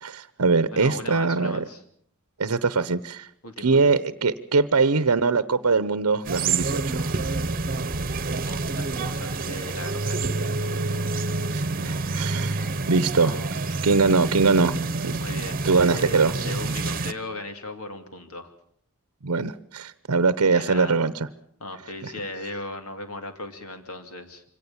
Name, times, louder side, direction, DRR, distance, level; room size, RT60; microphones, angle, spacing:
voice 1, 0.0-1.6 2.4-3.3 3.6-7.1 11.5-12.6 12.9-13.4 13.8-14.8 15.0-15.1 15.6-16.3 19.2-21.3 22.0-22.1, right 4 dB, 80° right, 15 dB, 0.8 m, -22 dB
voice 2, 0.7-1.8 3.4-3.9 8.4-10.3 13.2-13.6 15.2-18.5 20.5-21.0 21.6-24.4, left 2 dB, 75° left, 7 dB, 2.8 m, -37 dB
sound 1, 6.2-17.1, right 3 dB, 40° right, 1.1 m, -28 dB
24.5 x 17.5 x 7.2 m, 0.64 s
head